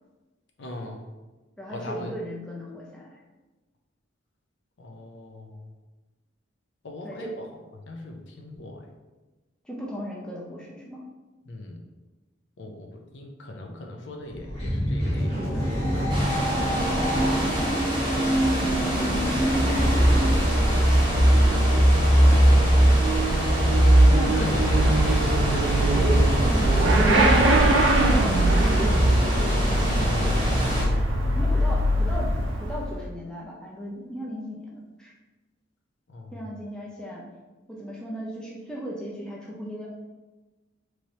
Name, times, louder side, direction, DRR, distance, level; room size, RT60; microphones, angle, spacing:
voice 1, 0.6-1.0 1.7-2.2 4.8-5.7 6.8-7.5 7.9-8.8 11.5-11.8 12.6-17.7 19.0-23.3 24.2-25.3 36.1-36.4, left 1 dB, 65° left, 1 dB, 0.5 m, -40 dB
voice 2, 1.6-3.2 7.0-7.4 9.6-11.1 24.1-24.8 25.8-28.1 28.7-30.7 31.3-32.3 32.6-35.1 36.3-37.2 37.7-39.9, equal, 5° left, -4 dB, 0.5 m, -36 dB
sound 1, 14.3-20.5, equal, 30° left, 1.3 m, -26 dB
sound 2, 16.1-30.9, equal, 25° right, 1.0 m, -28 dB
Motorcycle / Accelerating revving vroom, 19.2-33.0, right 1 dB, 80° right, 0.5 m, -20 dB
3.1 x 3.0 x 2.7 m, 1.2 s
head